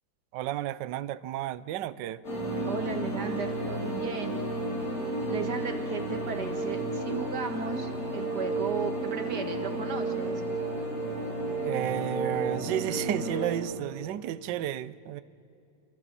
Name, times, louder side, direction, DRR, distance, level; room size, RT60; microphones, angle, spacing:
voice 1, 0.3-2.2 11.6-15.2, right 12 dB, 70° right, 16 dB, 1.2 m, -32 dB
sound 1, 2.2-13.6, right 2 dB, 65° left, 6.9 m, -32 dB
voice 2, 2.6-4.4 5.3-10.4, right 5 dB, 55° right, 5 dB, 2.2 m, -35 dB
29.0 x 28.0 x 4.2 m, 2.8 s
omnidirectional pair, 2.2 m